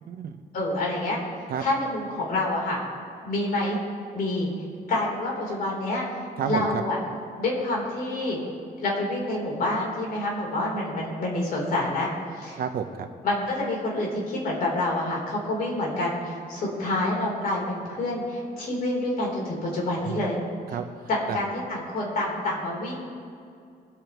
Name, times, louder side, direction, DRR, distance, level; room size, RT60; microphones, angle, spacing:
voice 1, 0.0-0.4 1.5-1.6 6.4-6.8 12.5-13.1 20.0-20.3 20.7-21.4, right 7 dB, 60° right, 6 dB, 0.9 m, -31 dB
voice 2, 0.5-1.2 1.6-2.8 3.2-3.8 4.1-4.5 4.9-6.1 6.4-7.0 7.4-8.4 8.8-12.1 12.4-12.6 13.2-20.4 21.1-23.0, left 2 dB, 55° left, -3 dB, 3.7 m, -27 dB
24.0 x 8.5 x 3.1 m, 2.3 s
cardioid pair, 170°, 17 cm